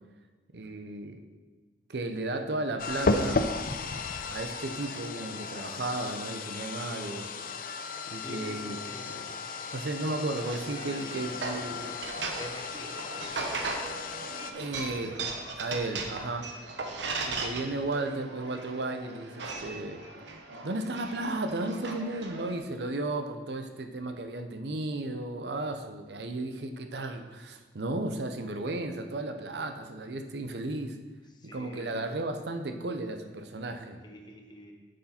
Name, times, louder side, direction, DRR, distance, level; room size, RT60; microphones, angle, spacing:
voice 1, 0.5-1.2 1.9-3.4 4.3-7.3 8.1-8.8 9.1-9.2 9.7-11.9 14.5-15.2 15.6-16.5 17.3-20.0 20.6-31.0 31.5-34.0, right 2 dB, 65° right, 6 dB, 0.7 m, -34 dB
sound 1, 2.8-14.5, left 3 dB, 50° left, 0.6 m, -35 dB
voice 2, 8.2-9.1 10.8-11.6 12.3-14.7 16.9-17.2 31.3-32.1 34.0-34.7, left 1 dB, 25° left, 2 dB, 1.0 m, -48 dB
sound 2, 10.4-22.6, right 3 dB, 80° right, 1.0 m, -38 dB
9.7 x 6.4 x 4.3 m, 1.3 s
head